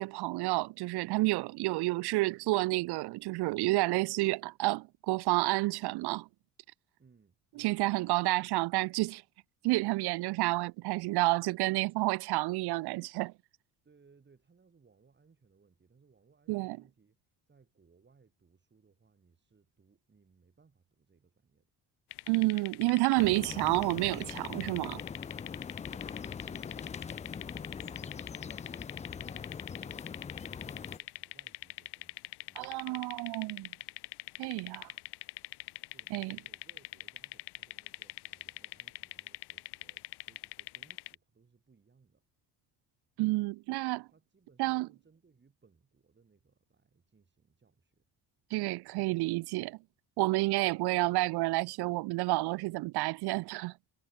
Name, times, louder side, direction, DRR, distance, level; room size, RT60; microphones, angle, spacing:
voice 1, 0.0-6.3 7.6-9.2 9.6-13.3 16.5-16.8 22.3-25.0 32.6-33.7 34.4-34.9 36.1-36.4 43.2-44.1 44.6-44.9 48.5-49.8 50.2-53.7, right 21 dB, 65° right, 0.5 m, -30 dB
voice 2, 7.0-7.8 13.8-21.7 25.8-33.7 35.9-42.2 44.1-48.1 52.2-52.5, right 5 dB, 25° right, 7.2 m, -66 dB
sound 1, 22.1-41.2, left 17 dB, 70° left, 1.4 m, -44 dB
sound 2, 23.2-31.0, left 6 dB, 20° left, 0.4 m, -42 dB
cardioid pair, 120°, 42 cm